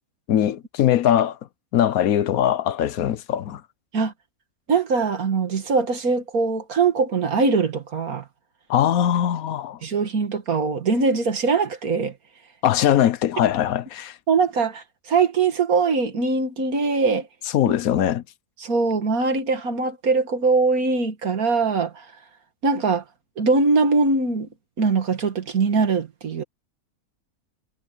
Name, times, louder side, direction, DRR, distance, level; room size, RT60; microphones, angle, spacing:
voice 1, 0.3-1.4 1.7-3.6 8.7-9.8 12.6-14.2 17.5-18.2, left 10 dB, 75° left, 1.2 m, -21 dB
voice 2, 4.7-8.2 9.8-12.1 14.3-17.3 18.6-22.1 22.6-23.0 23.4-24.5 24.8-26.4, right 4 dB, 75° right, 2.3 m, -22 dB
omnidirectional pair, 1.5 m